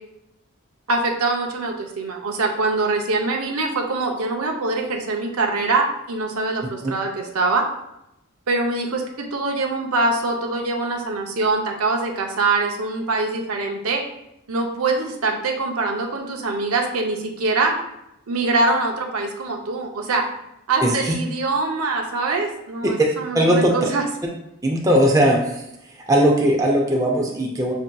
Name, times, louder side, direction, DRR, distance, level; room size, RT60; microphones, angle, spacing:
voice 1, 0.9-7.7 8.5-14.0 14.5-17.7 18.3-20.2 20.7-24.0, right 3 dB, 90° right, 2 dB, 0.6 m, -23 dB
voice 2, 20.8-21.1 23.0-23.1 23.3-23.9 24.6-25.6 26.1-27.7, right 1 dB, 15° right, -1 dB, 0.5 m, -18 dB
6.1 x 2.7 x 2.3 m, 0.84 s
head